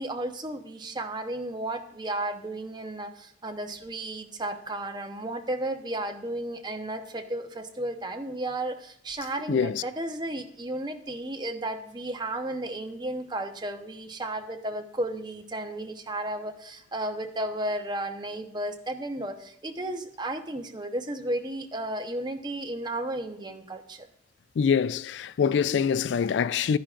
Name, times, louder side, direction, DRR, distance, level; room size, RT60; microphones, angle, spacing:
voice 1, 0.0-24.1, right 1 dB, 25° right, 0.9 m, -33 dB
voice 2, 9.5-9.8 24.6-26.8, left 6 dB, 80° left, 0.3 m, -24 dB
12.5 x 10.0 x 2.5 m
head